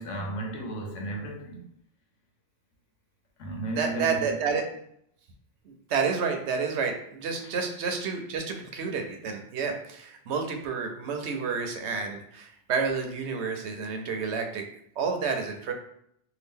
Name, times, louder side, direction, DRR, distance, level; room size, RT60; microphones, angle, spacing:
voice 1, 0.0-1.7 3.4-4.3, right 2 dB, 80° left, 1.0 m, -34 dB
voice 2, 3.7-4.6 5.7-14.6 15.0-15.7, right 5 dB, 70° right, 0.8 m, -30 dB
2.8 x 2.2 x 3.5 m
omnidirectional pair, 1.2 m